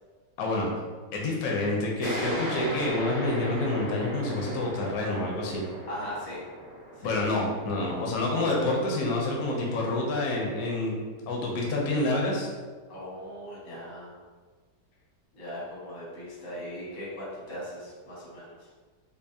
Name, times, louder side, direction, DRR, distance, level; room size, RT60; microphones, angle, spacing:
voice 1, 0.4-0.7 1.1-5.6 7.0-10.9 11.3-12.5, left 2 dB, 65° left, -2 dB, 1.0 m, -28 dB
sound 1, 2.0-9.2, equal, 40° right, 0.6 m, -37 dB
voice 2, 5.9-6.4 7.0-7.2 12.9-14.2 15.3-18.7, equal, 90° left, -7 dB, 1.9 m, -39 dB
5.3 x 2.1 x 2.7 m, 1.4 s
omnidirectional pair, 1.8 m